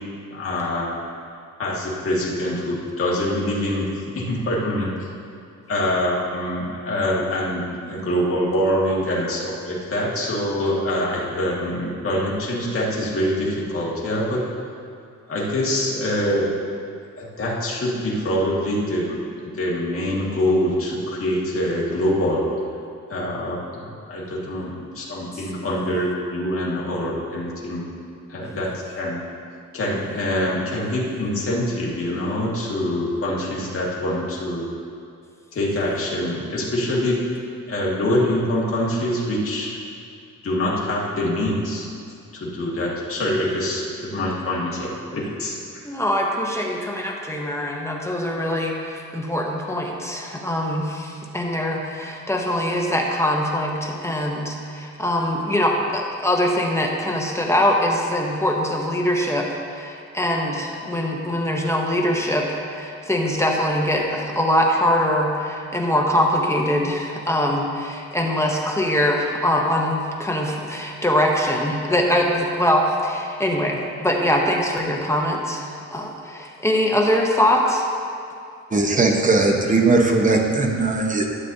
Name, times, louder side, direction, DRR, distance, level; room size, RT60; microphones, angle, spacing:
voice 1, 0.3-0.9 1.6-3.9 4.1-5.1 5.7-14.4 15.3-16.5 17.2-22.4 23.1-23.6 24.1-27.8 28.3-29.2 29.7-34.6 35.5-37.2 37.7-39.8 40.4-41.9 42.3-45.6, left 1 dB, 45° left, -5 dB, 1.9 m, -24 dB
voice 2, 45.8-77.8, left 1 dB, 10° left, -1 dB, 0.7 m, -23 dB
voice 3, 78.7-81.2, right 3 dB, 25° right, 2 dB, 0.9 m, -18 dB
13.0 x 8.2 x 2.7 m, 2.4 s
cardioid pair, 155°, 32 cm